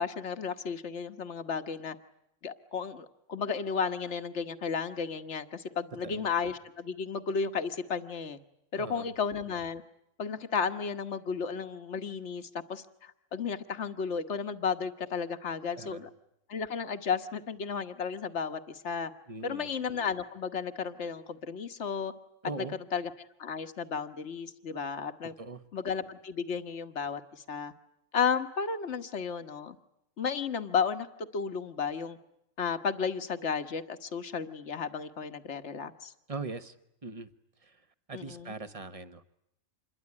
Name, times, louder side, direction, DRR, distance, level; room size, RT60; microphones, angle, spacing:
voice 1, 0.0-2.0 2.4-8.4 8.7-9.8 10.2-16.1 16.5-19.1 19.4-22.1 22.9-23.1 23.4-25.3 25.7-27.7 28.1-29.8 30.2-32.2 32.6-36.1 38.1-38.5, left 6 dB, 60° left, 9 dB, 1.6 m, -33 dB
voice 2, 8.7-9.1 15.8-16.0 19.3-19.7 22.4-22.7 25.4-25.6 36.3-36.7 37.0-37.3 37.6-37.8 38.1-39.2, right 3 dB, 25° right, 11 dB, 1.3 m, -40 dB
27.0 x 22.0 x 9.7 m, 0.79 s
omnidirectional pair, 1.4 m